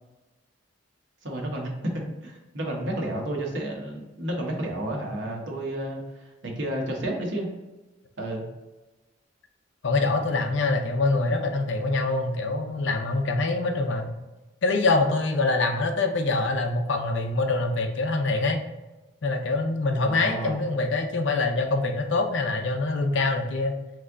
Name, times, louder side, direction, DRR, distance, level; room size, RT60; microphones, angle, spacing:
voice 1, 1.2-7.5 8.2-8.5 20.1-20.6, right 1 dB, 65° right, 0 dB, 1.0 m, -31 dB
voice 2, 9.8-14.1 14.6-18.6 19.2-23.8, left 3 dB, 65° left, 4 dB, 0.6 m, -25 dB
3.4 x 3.2 x 3.8 m, 1.1 s
head